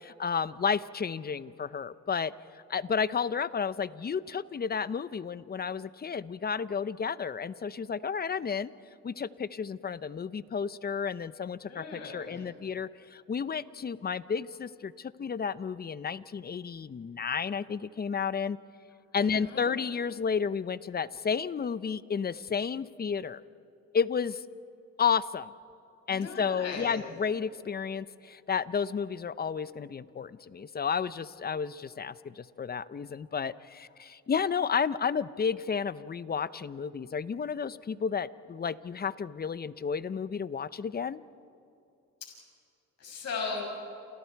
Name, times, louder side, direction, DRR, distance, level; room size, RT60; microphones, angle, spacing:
voice 1, 0.0-8.7 9.0-18.6 19.1-23.4 23.9-24.4 25.0-25.5 26.1-41.2, left 6 dB, 30° left, 16 dB, 0.7 m, -32 dB
voice 2, 11.7-12.4 19.1-19.7 26.1-27.0 43.0-43.6, left 4 dB, 60° left, -1 dB, 6.6 m, -38 dB
28.5 x 28.5 x 4.7 m, 2.5 s
cardioid pair, 90°, 30 cm